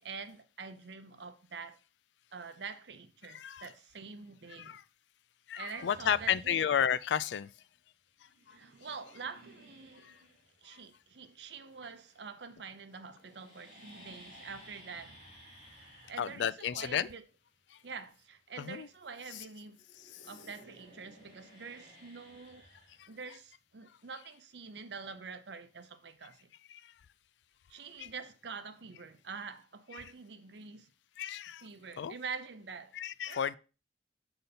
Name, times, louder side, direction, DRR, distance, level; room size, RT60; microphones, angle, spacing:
voice 1, 0.0-1.8 2.3-4.8 5.6-6.6 8.5-10.1 10.6-17.2 17.8-19.8 20.2-22.7 23.1-26.5 27.7-30.9 31.6-32.9 33.3-33.6, right 5 dB, 75° right, 0.7 m, -46 dB
voice 2, 3.3-3.7 4.6-4.8 5.5-7.5 10.0-10.2 16.2-17.1 17.7-17.8 18.6-18.9 19.3-19.4 20.0-20.2 23.0-23.4 24.1-24.2 26.7-26.9 28.0-28.1 29.9-30.1 31.2-31.7 32.0-32.1 32.9-33.6, left 8 dB, 80° left, 0.3 m, -33 dB
sound 1, 5.7-7.0 8.2-12.5 12.8-19.4 19.7-23.5, equal, 40° left, 3.5 m, -57 dB
6.7 x 3.9 x 4.0 m
head